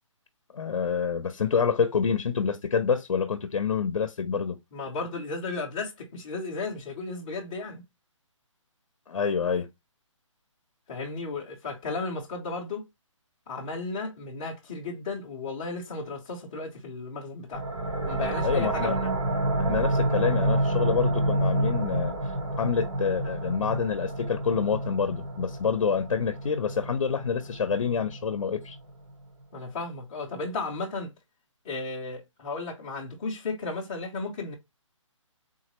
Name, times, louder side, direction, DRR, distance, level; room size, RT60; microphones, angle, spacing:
voice 1, 0.5-4.6 9.1-9.7 18.4-19.0 19.6-22.1 22.6-28.8, left 6 dB, 65° left, 0.5 m, -27 dB
voice 2, 4.7-7.8 10.9-12.8 13.5-17.6 18.1-19.1 29.5-31.1 31.6-34.5, left 3 dB, 15° left, 0.5 m, -34 dB
sound 1, 17.5-28.9, right 1 dB, 80° right, 1.8 m, -29 dB
3.7 x 2.0 x 2.9 m
hypercardioid pair, 170°, 17 cm